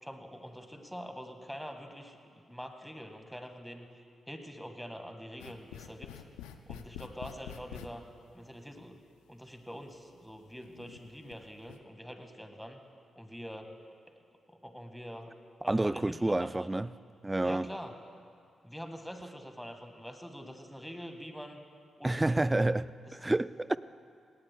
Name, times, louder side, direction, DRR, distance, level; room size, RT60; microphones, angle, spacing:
voice 1, 0.0-3.9 4.3-6.1 6.7-8.0 8.3-9.0 9.3-12.8 13.1-13.7 14.5-15.3 15.6-16.7 17.4-17.9 18.6-21.6 22.0-22.5 23.1-23.3, equal, ahead, 5 dB, 1.7 m, -45 dB
sound 1, 5.4-7.9 8.9-9.0 9.8-9.9 10.6-11.3 11.6-11.8, left 11 dB, 90° left, 0.4 m, -46 dB
voice 2, 15.7-16.9 17.2-17.7 22.0-23.8, right 2 dB, 20° right, 16 dB, 0.4 m, -29 dB
18.0 x 17.5 x 2.3 m, 2.2 s
hypercardioid pair, 40°, 0 cm